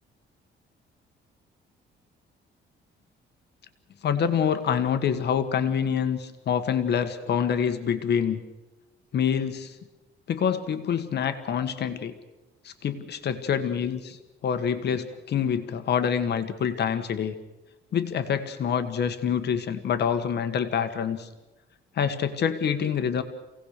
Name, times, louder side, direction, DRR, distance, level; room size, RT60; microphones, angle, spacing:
voice 1, 4.0-8.4 9.1-9.7 10.3-12.1 12.6-14.2 14.4-17.3 17.9-21.3 21.9-23.2, left 7 dB, 55° left, 8 dB, 1.6 m, -26 dB
27.5 x 17.5 x 6.7 m, 1.1 s
cardioid pair, 140°, 20 cm